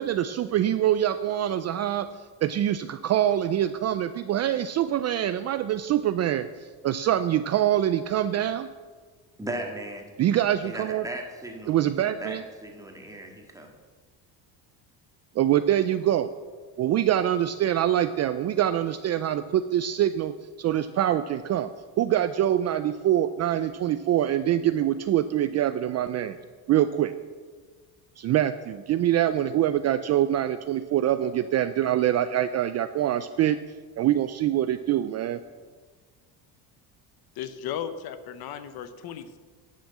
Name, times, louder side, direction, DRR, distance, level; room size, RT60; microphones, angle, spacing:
voice 1, 0.0-2.1 2.4-8.7 10.2-11.1 11.7-12.4 15.4-16.3 16.8-21.7 22.0-26.4 26.7-27.1 28.2-33.6 34.0-35.4, right 11 dB, 40° right, 12 dB, 0.4 m, -24 dB
voice 2, 9.4-10.1 10.6-13.7, right 1 dB, 10° right, 1 dB, 1.9 m, -37 dB
voice 3, 37.3-39.4, left 9 dB, 60° left, 11 dB, 0.9 m, -35 dB
11.5 x 6.5 x 7.2 m, 1.5 s
cardioid pair, 120°, 42 cm